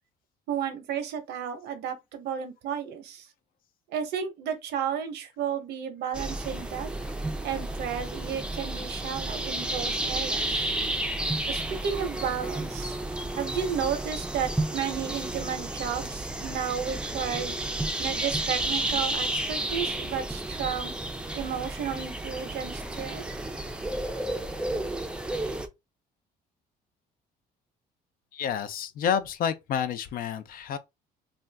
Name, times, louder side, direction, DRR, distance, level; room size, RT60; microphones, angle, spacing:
voice 1, 0.5-3.3 3.9-6.9 7.4-10.7 11.5-13.0 13.4-17.6 18.0-20.9 21.3-23.3, right 8 dB, 80° right, 0.9 m, -33 dB
sound 1, 6.1-25.7, right 1 dB, 5° right, 0.5 m, -32 dB
voice 2, 28.3-30.8, left 8 dB, 60° left, 0.5 m, -29 dB
2.5 x 2.3 x 3.3 m
cardioid pair, 110°, 17 cm